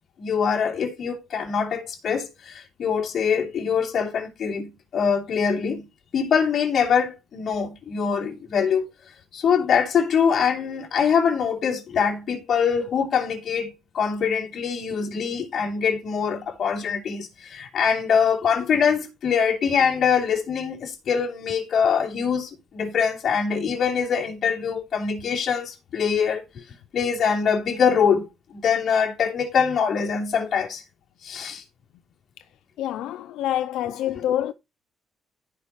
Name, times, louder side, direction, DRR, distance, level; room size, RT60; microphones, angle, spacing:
voice 1, 0.2-5.8 6.1-8.9 9.3-26.6 26.9-30.8 31.2-31.6 34.1-34.2, left 6 dB, 60° left, 3.1 m, -23 dB
voice 2, 32.8-34.5, left 11 dB, 85° left, 0.5 m, -26 dB
15.0 x 5.7 x 3.1 m
cardioid pair, 90°, 0 cm